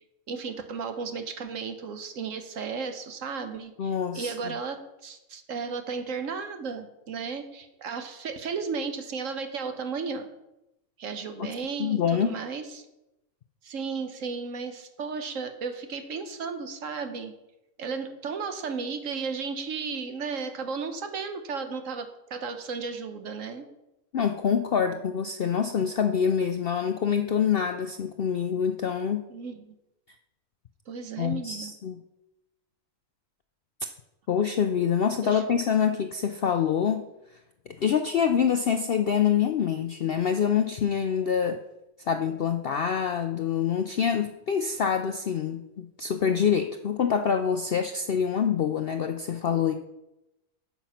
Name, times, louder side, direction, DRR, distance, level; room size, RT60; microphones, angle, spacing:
voice 1, 0.3-10.3 11.0-12.8 13.6-17.3 17.8-23.7 29.3-29.7 30.9-31.7 35.2-35.4 35.7-35.8, right 5 dB, 65° right, 8 dB, 1.2 m, -34 dB
voice 2, 3.8-4.3 11.8-12.4 24.1-29.2 31.2-32.0 34.3-37.0 37.7-41.6 42.1-49.7, left 7 dB, 65° left, 7 dB, 0.5 m, -26 dB
9.0 x 7.0 x 5.7 m, 0.92 s
omnidirectional pair, 1.6 m